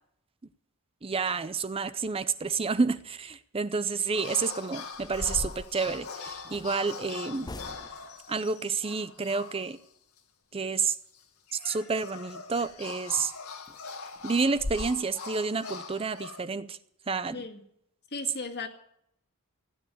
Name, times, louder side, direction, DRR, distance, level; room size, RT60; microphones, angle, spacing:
voice 1, 1.0-7.5 8.3-9.8 10.5-11.0 11.6-13.3 14.2-16.8 17.1-17.4, right 4 dB, 25° right, 0.6 m, -29 dB
sound 1, 4.1-9.9 10.2-10.3 11.1-16.4, left 5 dB, 80° left, 2.1 m, -42 dB
sound 2, 4.1-4.4 4.9-6.7 7.4-8.1 12.6-12.7 13.2-13.3 13.7-13.8 14.2-14.3 14.5-14.9, left 2 dB, 20° left, 0.6 m, -39 dB
voice 2, 18.1-18.7, left 4 dB, 50° left, 2.0 m, -36 dB
16.0 x 9.3 x 9.5 m
head